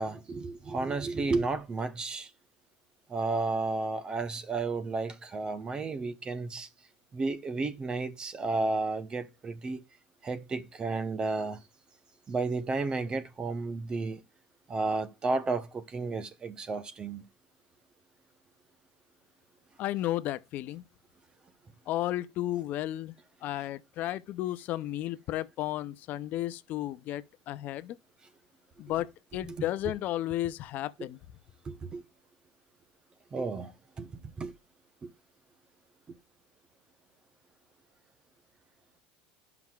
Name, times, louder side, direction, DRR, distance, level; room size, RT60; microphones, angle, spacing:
voice 1, 0.0-2.3 3.1-6.7 7.1-9.8 10.2-11.6 12.3-14.2 14.7-17.2 29.5-29.6 31.6-32.0 33.3-33.7 34.0-34.5 35.0-35.1, right 3 dB, 20° right, 0.8 m, -32 dB
voice 2, 19.8-20.8 21.9-23.1 23.4-28.0 28.8-31.2, left 14 dB, 45° left, 0.5 m, -33 dB
11.0 x 5.9 x 2.3 m
supercardioid pair, 135°, 4 cm